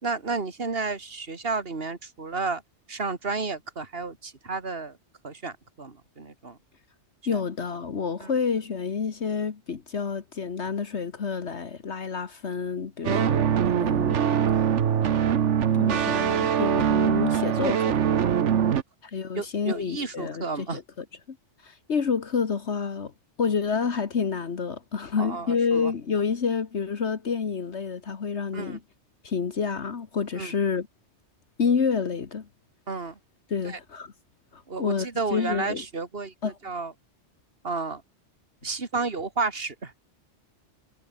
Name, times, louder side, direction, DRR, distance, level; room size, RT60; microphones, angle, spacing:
voice 1, 0.0-2.6 2.9-5.0 5.2-6.6 8.2-8.3 13.1-13.3 18.7-18.8 19.3-20.8 25.2-25.9 28.5-28.8 30.4-30.5 32.9-33.2 33.6-33.8 34.7-36.9 37.6-38.0 38.6-39.9, right 4 dB, 55° right, 2.7 m, -32 dB
voice 2, 7.3-13.4 13.7-14.2 14.5-14.7 15.7-18.0 19.0-21.4 21.6-23.1 23.4-28.8 29.2-30.9 31.6-32.5 33.5-34.1 34.5-35.8 36.4-36.6, left 5 dB, 70° left, 1.7 m, -29 dB
sound 1, 13.0-18.8, right 8 dB, 80° right, 1.3 m, -23 dB
omnidirectional pair, 1.2 m